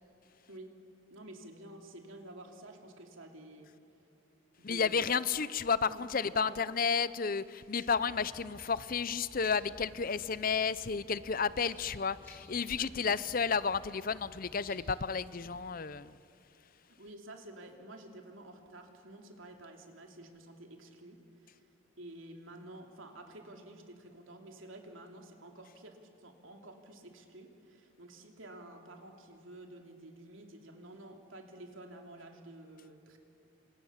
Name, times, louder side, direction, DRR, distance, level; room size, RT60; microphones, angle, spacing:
voice 1, 1.1-3.7 4.6-5.1 5.8-6.0 6.3-6.6 12.8-13.2 17.0-21.6 22.0-33.2, right 1 dB, 70° right, 3 dB, 3.1 m, -50 dB
voice 2, 4.6-16.2, left 5 dB, 40° left, 16 dB, 0.6 m, -32 dB
sound 1, 7.9-15.7, equal, 10° left, 5.8 m, -57 dB
28.5 x 26.5 x 7.3 m, 2.7 s
head